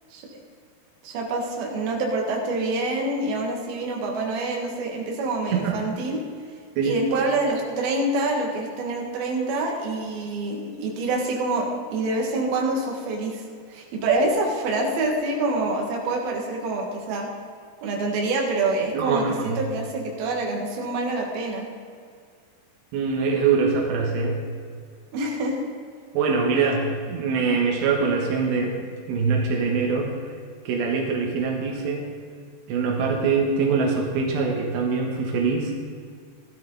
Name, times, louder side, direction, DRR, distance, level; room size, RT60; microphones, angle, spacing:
voice 1, 1.0-6.2 6.8-13.4 13.7-17.3 17.8-21.7 25.1-25.6, right 2 dB, 65° right, -1 dB, 3.5 m, -26 dB
voice 2, 18.9-19.6 22.9-24.4 26.1-28.8 29.1-30.1 30.7-32.1 32.7-35.7, right 5 dB, 85° right, 0 dB, 3.5 m, -23 dB
16.5 x 12.5 x 4.0 m, 2.1 s
omnidirectional pair, 4.9 m